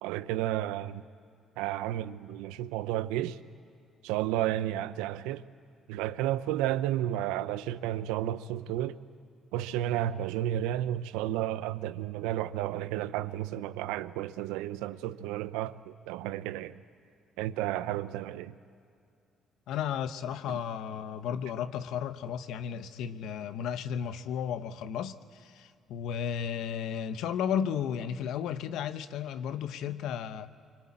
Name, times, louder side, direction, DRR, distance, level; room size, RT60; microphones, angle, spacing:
voice 1, 0.0-1.0 1.6-3.4 4.0-5.4 5.9-9.0 9.5-16.8 17.4-18.6, right 13 dB, 85° right, 0.7 m, -32 dB
voice 2, 19.7-30.5, left 8 dB, 75° left, 0.9 m, -34 dB
25.0 x 24.5 x 8.7 m
supercardioid pair, 60°, 0 cm